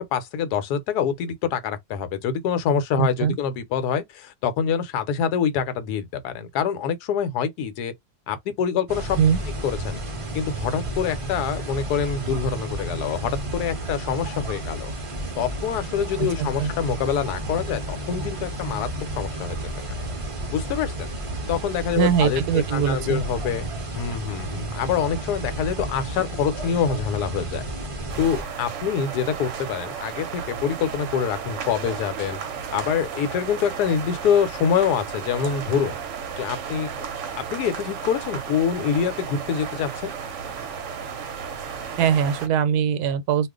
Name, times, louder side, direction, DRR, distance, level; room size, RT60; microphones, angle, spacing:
voice 1, 0.1-7.9 8.3-9.2 9.6-10.0 10.3-14.9 15.4-18.9 19.2-19.6 20.5-21.1 21.4-23.6 23.9-27.6 28.2-32.4 32.7-36.0 36.4-36.9 37.5-40.1, left 7 dB, 80° left, 1.2 m, -25 dB
voice 2, 3.0-3.4 9.2-9.4 16.2-16.7 22.0-23.2 42.0-43.5, right 8 dB, 85° right, 1.1 m, -22 dB
sound 1, 8.9-28.4, right 1 dB, 40° right, 0.4 m, -32 dB
sound 2, 28.1-42.5, right 6 dB, 60° right, 0.9 m, -34 dB
2.4 x 2.4 x 3.6 m
omnidirectional pair, 1.7 m